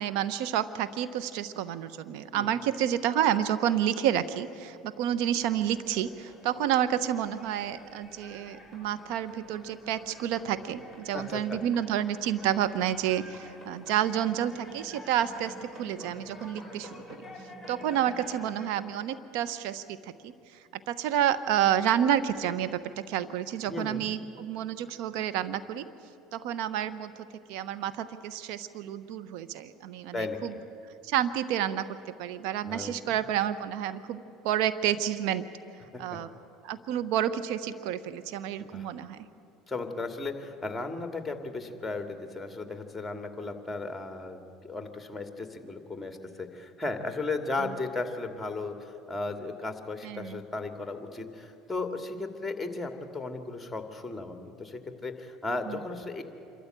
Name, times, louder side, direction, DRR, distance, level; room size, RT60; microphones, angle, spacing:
voice 1, 0.0-17.2 17.7-20.3 20.9-25.8 26.3-27.1 27.5-30.5 31.0-35.5 36.0-36.3 36.6-39.2 47.6-47.7 50.0-50.4 55.7-55.8, right 10 dB, 70° right, 13 dB, 1.0 m, -29 dB
sound 1, 5.4-18.7, left 1 dB, 10° right, 6.4 m, -49 dB
voice 2, 11.1-11.6 23.7-24.1 30.1-30.4 32.6-33.0 35.9-36.2 38.6-38.9 39.7-56.2, left 3 dB, 10° left, 6 dB, 2.4 m, -35 dB
26.0 x 13.5 x 9.0 m, 2.7 s
hypercardioid pair, 80°, 0 cm